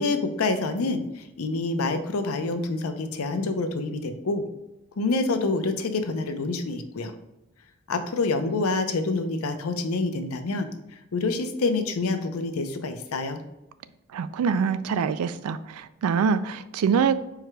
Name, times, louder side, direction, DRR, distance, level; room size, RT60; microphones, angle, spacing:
voice 1, 0.0-4.4 5.0-7.1 7.9-13.4, left 3 dB, 80° left, 8 dB, 0.5 m, -27 dB
voice 2, 14.1-17.1, right 6 dB, 85° right, 14 dB, 0.3 m, -24 dB
4.7 x 4.7 x 2.2 m, 0.94 s
head